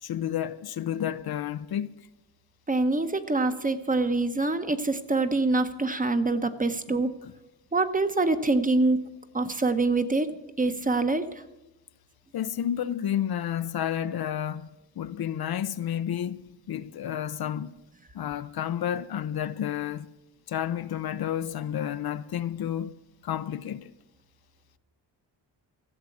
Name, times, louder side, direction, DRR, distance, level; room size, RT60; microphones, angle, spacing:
voice 1, 0.0-1.9 6.9-7.0 7.2-7.3 12.3-14.7 15.0-17.7 18.1-20.1 20.5-22.9 23.2-23.9, left 10 dB, 60° left, 0.6 m, -31 dB
voice 2, 2.7-7.1 7.7-9.1 9.3-10.3 10.6-11.2, right 3 dB, 20° right, 0.8 m, -25 dB
14.5 x 7.4 x 8.4 m
wide cardioid pair, 120°, 44 cm